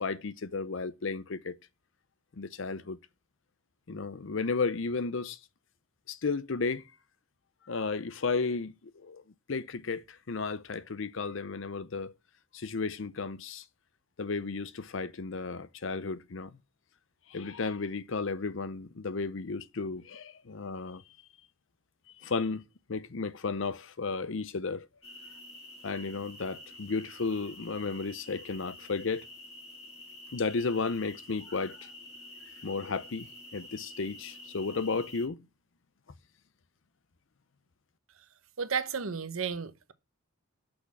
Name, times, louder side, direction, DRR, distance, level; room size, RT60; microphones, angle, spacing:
voice 1, 0.0-1.6 2.4-3.0 3.9-5.4 6.1-6.8 7.7-8.7 9.0-9.2 9.5-12.1 12.5-13.6 14.2-16.5 17.3-21.0 22.2-22.6 22.9-24.9 25.8-29.2 30.3-31.8 32.6-33.3 33.5-35.4, left 4 dB, 65° left, 0.6 m, -33 dB
sound 1, 25.0-35.3, left 1 dB, 30° left, 2.2 m, -49 dB
voice 2, 38.6-39.9, right 6 dB, 80° right, 0.9 m, -33 dB
6.1 x 6.0 x 7.3 m
head